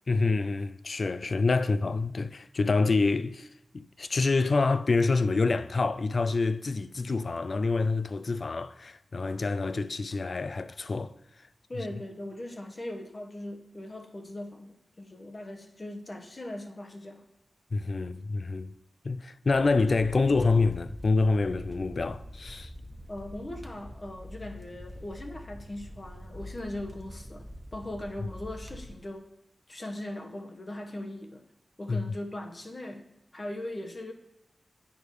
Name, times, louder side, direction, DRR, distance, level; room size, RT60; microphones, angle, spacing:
voice 1, 0.1-3.5 3.7-11.1 11.8-11.9 17.7-18.7 19.0-22.7 31.9-32.0, left 3 dB, 55° left, 0.4 m, -27 dB
voice 2, 11.7-17.3 23.1-29.3 29.7-31.4 31.8-34.1, left 1 dB, 35° left, 1.0 m, -40 dB
sound 1, 19.5-28.9, left 1 dB, 10° right, 1.1 m, -44 dB
9.0 x 5.0 x 4.7 m
wide cardioid pair, 80°, 0 cm